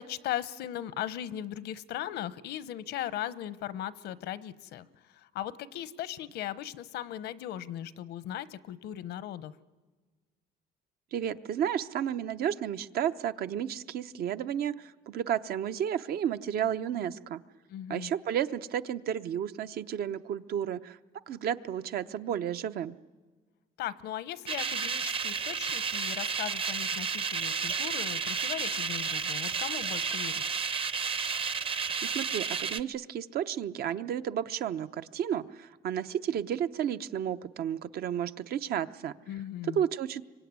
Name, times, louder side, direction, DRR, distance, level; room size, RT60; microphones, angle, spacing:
voice 1, 0.0-9.5 17.7-18.1 23.8-30.4 39.3-39.8, left 12 dB, 80° left, 16 dB, 0.9 m, -38 dB
voice 2, 11.1-17.4 17.9-21.0 21.3-23.0 31.7-39.1 39.7-40.2, right 9 dB, 65° right, 11 dB, 0.9 m, -32 dB
sound 1, 24.5-32.8, right 6 dB, 30° right, 0.8 m, -32 dB
25.0 x 24.0 x 9.6 m, 1.4 s
cardioid pair, 110°, 17 cm